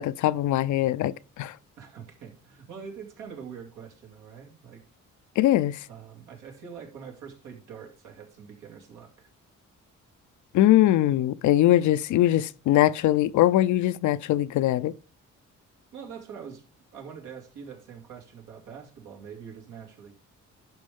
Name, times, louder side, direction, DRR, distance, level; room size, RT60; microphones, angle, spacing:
voice 1, 0.0-1.6 5.4-5.9 10.5-14.9, left 14 dB, 75° left, 0.5 m, -22 dB
voice 2, 1.8-4.8 5.9-9.3 15.9-16.6 16.9-20.1, right 7 dB, 85° right, 2.5 m, -44 dB
11.5 x 5.3 x 3.6 m
cardioid pair, 90°, 30 cm